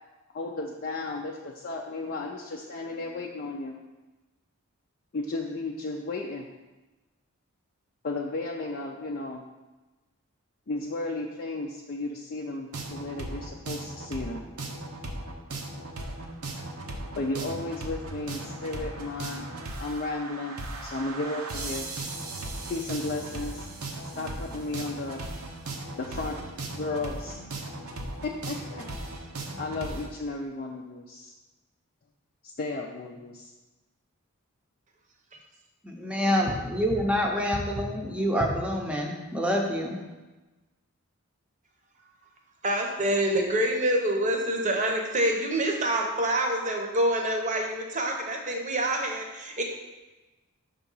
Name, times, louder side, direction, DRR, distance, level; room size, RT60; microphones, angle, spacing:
voice 1, 0.3-3.7 5.1-6.5 8.0-9.4 10.7-14.4 17.2-19.5 19.8-21.9 22.7-23.7 24.2-25.2 26.0-26.4 26.7-27.4 28.2-28.8 29.6-31.3 32.4-33.5, left 2 dB, 45° left, 0 dB, 0.4 m, -34 dB
sound 1, 12.7-30.1, right 2 dB, 80° right, 0.9 m, -37 dB
voice 2, 35.8-40.0, equal, 5° right, 0 dB, 0.7 m, -27 dB
voice 3, 42.6-49.6, right 1 dB, 35° right, 2 dB, 0.9 m, -26 dB
5.8 x 3.7 x 5.4 m, 1.1 s
head